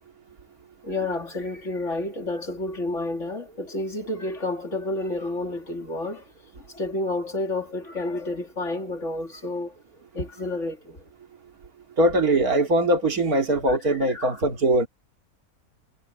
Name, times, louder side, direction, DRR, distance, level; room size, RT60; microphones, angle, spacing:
voice 1, 0.8-6.3 6.6-9.8 10.1-11.0 13.7-14.4, left 2 dB, 50° left, 3.2 m, -30 dB
voice 2, 12.0-14.9, right 1 dB, 65° right, 3.1 m, -21 dB
omnidirectional pair, 1.7 m